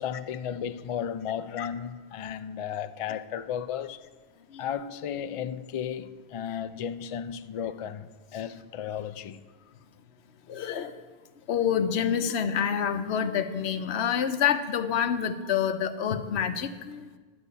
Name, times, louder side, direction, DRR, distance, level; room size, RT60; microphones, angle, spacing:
voice 1, 0.0-4.0 4.6-9.4, left 8 dB, 60° left, 0.3 m, -34 dB
voice 2, 10.5-11.0 11.5-17.1, left 8 dB, 85° left, 1.0 m, -27 dB
11.5 x 5.4 x 8.2 m
omnidirectional pair, 1.1 m